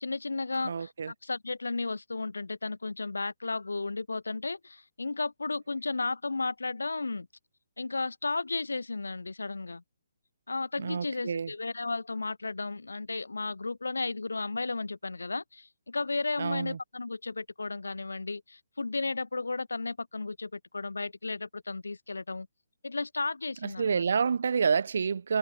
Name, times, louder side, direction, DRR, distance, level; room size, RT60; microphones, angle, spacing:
voice 1, 0.0-7.3 7.8-9.8 10.5-22.5 22.8-24.0, left 3 dB, 85° left, 0.9 m, -34 dB
voice 2, 0.6-1.1 10.8-11.5 16.4-16.8 23.6-25.4, right 6 dB, 65° right, 0.9 m, -28 dB
figure-of-eight pair, 145°, 0 cm